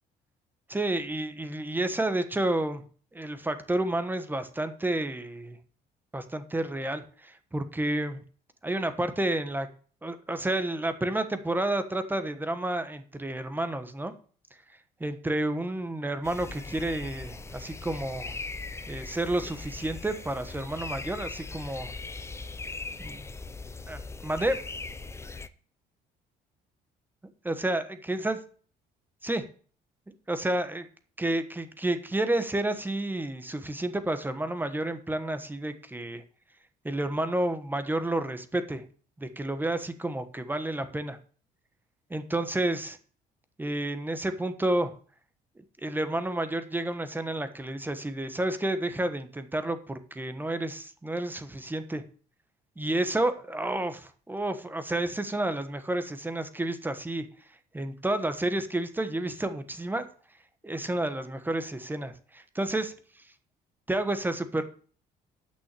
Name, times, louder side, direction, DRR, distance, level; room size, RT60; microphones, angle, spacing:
voice 1, 0.7-2.8 3.1-5.6 6.1-8.2 8.6-9.7 10.0-14.1 15.0-18.4 18.9-21.9 23.0-23.2 23.9-24.6 27.4-28.4 29.2-29.4 30.3-30.9 31.2-36.2 36.8-38.8 39.2-41.2 42.1-43.0 43.6-44.9 45.8-52.0 52.8-57.2 57.7-60.0 60.6-62.9 63.9-64.6, right 1 dB, 10° right, 10 dB, 1.2 m, -30 dB
sound 1, 16.2-25.5, left 3 dB, 15° left, 0.7 m, -40 dB
8.8 x 6.2 x 8.3 m, 0.43 s
cardioid pair, 110°, 17 cm